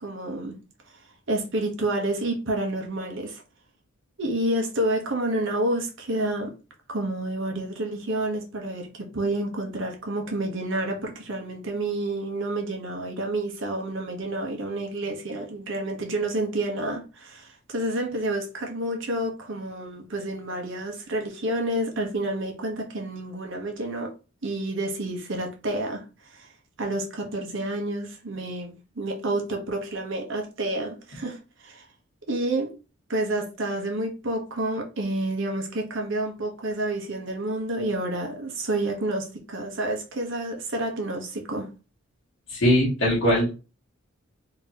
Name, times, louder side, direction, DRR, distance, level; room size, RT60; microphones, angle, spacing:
voice 1, 0.0-0.6 1.3-3.4 4.2-6.5 6.9-24.1 24.4-26.0 26.3-26.5 26.8-31.8 32.3-32.7 33.1-41.7, right 1 dB, 65° right, 1.0 m, -29 dB
voice 2, 42.5-43.6, equal, 70° left, 1.5 m, -21 dB
3.9 x 2.9 x 2.9 m
head